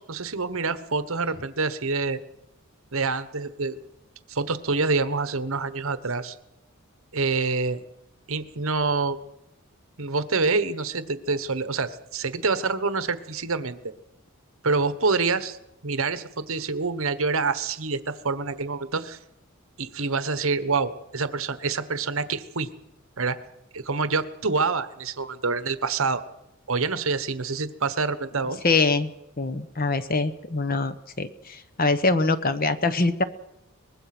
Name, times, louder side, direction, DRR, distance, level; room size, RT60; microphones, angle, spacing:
voice 1, 0.0-2.2 2.9-3.8 4.3-6.4 7.1-7.8 8.3-9.2 10.0-13.8 14.6-15.6 15.8-19.2 19.8-22.7 23.2-23.4 23.7-26.2 26.7-28.6, right 4 dB, 65° right, 12 dB, 1.2 m, -26 dB
voice 2, 28.6-29.1 29.4-33.2, left 3 dB, 40° left, 12 dB, 1.0 m, -24 dB
23.5 x 21.0 x 6.1 m, 0.87 s
head